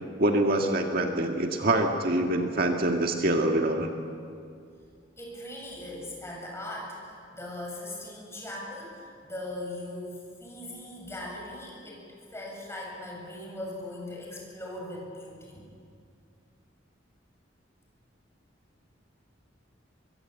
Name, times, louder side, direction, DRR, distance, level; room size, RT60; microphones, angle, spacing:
voice 1, 0.2-3.9, right 1 dB, 55° right, 3 dB, 1.7 m, -25 dB
voice 2, 5.2-12.0 12.3-15.6, left 1 dB, 15° left, -2 dB, 7.6 m, -39 dB
25.0 x 23.0 x 8.1 m, 2.3 s
head